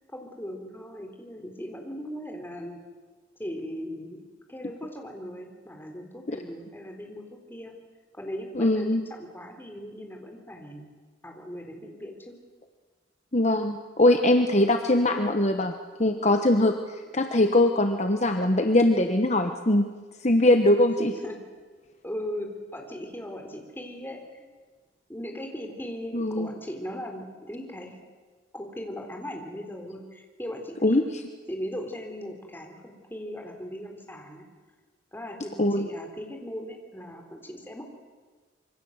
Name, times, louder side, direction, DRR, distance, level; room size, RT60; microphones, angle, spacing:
voice 1, 0.1-2.8 3.4-4.2 4.5-7.2 7.5-7.7 8.1-10.9 11.2-12.3 21.0-21.4 22.0-24.5 25.1-28.0 28.5-31.1 31.5-34.5 35.1-37.8, equal, 10° left, 2 dB, 3.8 m, -38 dB
voice 2, 8.6-9.0 13.3-15.7 16.0-19.8 20.2-21.1 26.1-26.5 30.8-31.0 35.6-35.9, left 1 dB, 40° left, 6 dB, 1.2 m, -22 dB
26.0 x 24.0 x 8.0 m, 1.4 s
head